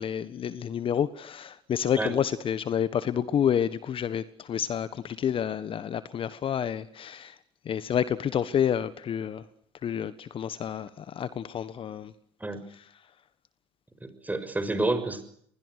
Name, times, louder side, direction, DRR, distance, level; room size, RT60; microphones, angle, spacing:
voice 1, 0.0-7.3 7.6-9.4 9.8-12.1, left 9 dB, 40° left, 1.4 m, -29 dB
voice 2, 14.0-15.2, right 2 dB, 10° right, 6.2 m, -29 dB
29.0 x 21.5 x 6.6 m
hypercardioid pair, 70°, 14 cm